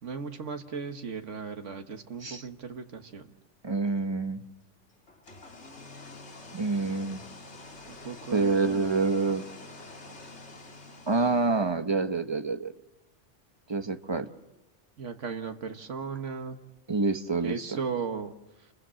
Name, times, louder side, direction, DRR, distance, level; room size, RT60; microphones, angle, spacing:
voice 1, 0.0-3.3 7.9-8.8 15.0-16.6 17.4-18.3 18.6-18.7, right 5 dB, 90° right, 6 dB, 1.7 m, -36 dB
voice 2, 3.6-4.4 6.5-7.2 8.3-9.5 11.1-12.7 13.7-14.3 16.9-17.8, right 3 dB, 25° right, 8 dB, 1.2 m, -27 dB
sound 1, 5.1-11.8, left 2 dB, 65° left, 2.4 m, -47 dB
29.5 x 22.5 x 7.6 m, 0.90 s
omnidirectional pair, 1.2 m